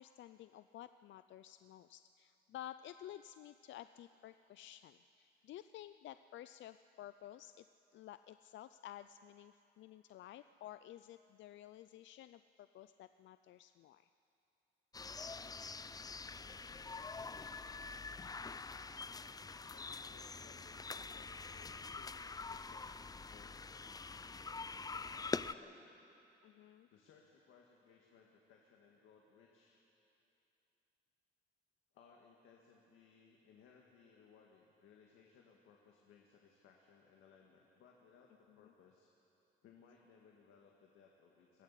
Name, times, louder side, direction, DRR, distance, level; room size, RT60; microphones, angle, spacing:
voice 1, 0.0-7.7 7.9-14.1 26.4-26.9 38.5-38.7, left 12 dB, 70° left, 12 dB, 0.5 m, -53 dB
sound 1, 14.9-25.5, left 4 dB, 20° left, 0.5 m, -45 dB
voice 2, 19.7-22.1 22.5-23.0 23.3-23.9 24.9-25.9 26.9-29.8 31.9-39.1 39.6-41.6, left 6 dB, 85° left, 0 dB, 1.9 m, -64 dB
22.0 x 15.0 x 8.3 m, 2.9 s
cardioid pair, 90°, 20 cm